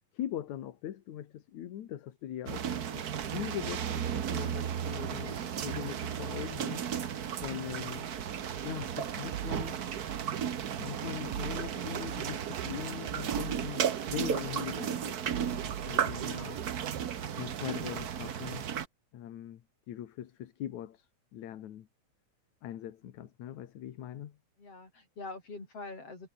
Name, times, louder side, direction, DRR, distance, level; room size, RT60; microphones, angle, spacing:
voice 1, 0.1-6.8 7.4-8.1 8.6-9.8 10.8-16.6 17.4-18.7 19.1-19.6 19.9-21.1 21.3-21.9 22.6-24.4, left 11 dB, 75° left, 2.8 m, -41 dB
sound 1, 2.5-18.9, right 8 dB, 70° right, 0.9 m, -34 dB
sound 2, 9.3-17.3, right 12 dB, 90° right, 2.8 m, -43 dB
voice 2, 24.6-26.3, left 3 dB, 50° left, 8.3 m, -45 dB
omnidirectional pair, 3.5 m